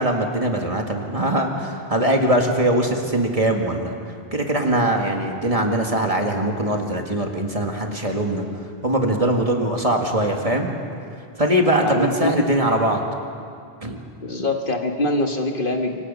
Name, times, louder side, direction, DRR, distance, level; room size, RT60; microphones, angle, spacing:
voice 1, 0.0-3.9 4.3-8.4 8.8-10.7 11.4-13.0 13.8-14.0, right 1 dB, 35° right, 2 dB, 2.0 m, -21 dB
voice 2, 11.8-12.5 14.2-16.0, left 2 dB, 55° left, 3 dB, 1.7 m, -24 dB
26.5 x 24.0 x 5.6 m, 2.4 s
omnidirectional pair, 1.1 m